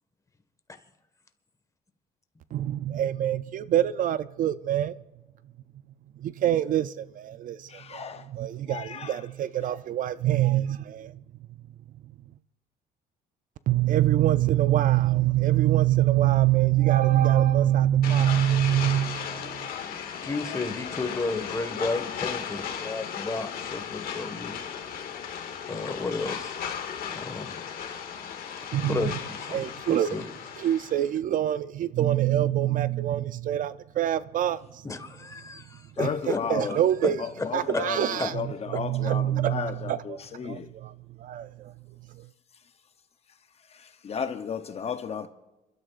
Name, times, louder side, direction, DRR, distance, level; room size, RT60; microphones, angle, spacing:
voice 1, 2.5-5.0 6.2-11.2 13.7-19.5 28.7-29.1 29.5-30.2 30.6-34.6 36.0-36.1 36.5-37.2 37.5-40.9 41.2-41.7, right 12 dB, 50° right, 0.4 m, -25 dB
voice 2, 7.7-8.2 8.7-9.1 36.0-36.8 37.5-38.0 38.3-38.5 38.7-40.7 44.0-45.3, left 6 dB, 40° left, 0.7 m, -33 dB
sound 1, 18.0-31.1, left 8 dB, 60° left, 2.0 m, -36 dB
voice 3, 20.2-24.5 25.7-26.5 27.1-27.6 28.9-30.3 34.8-36.4 37.4-37.5 37.7-37.8 38.2-38.3, left 3 dB, 20° left, 1.5 m, -32 dB
27.5 x 13.0 x 2.5 m
cardioid pair, 110°, 17 cm